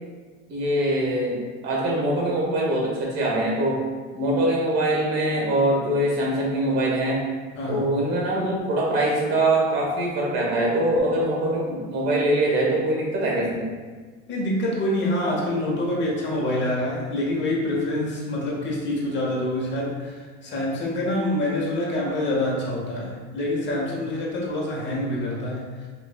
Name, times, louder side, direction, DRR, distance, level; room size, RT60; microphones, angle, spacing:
voice 1, 0.5-3.8 4.1-7.2 7.7-13.7, right 1 dB, 60° right, -3 dB, 1.3 m, -23 dB
voice 2, 14.3-25.9, left 1 dB, 40° left, -3 dB, 0.9 m, -26 dB
5.0 x 2.5 x 2.2 m, 1.5 s
supercardioid pair, 115°, 30 cm